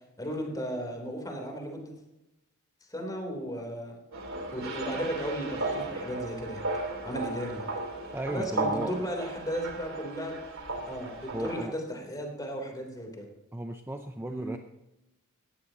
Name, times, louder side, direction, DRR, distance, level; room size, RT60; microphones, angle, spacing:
voice 1, 0.2-1.9 2.9-4.0 4.5-7.6 8.3-10.3 10.9-13.3 14.3-14.5, equal, 15° left, 2 dB, 3.5 m, -35 dB
sound 1, 4.1-11.6, right 2 dB, 65° right, 3.8 m, -35 dB
voice 2, 8.1-9.0 11.3-11.8 13.5-14.6, right 1 dB, 10° right, 6 dB, 0.6 m, -35 dB
18.0 x 14.5 x 3.0 m, 0.93 s
head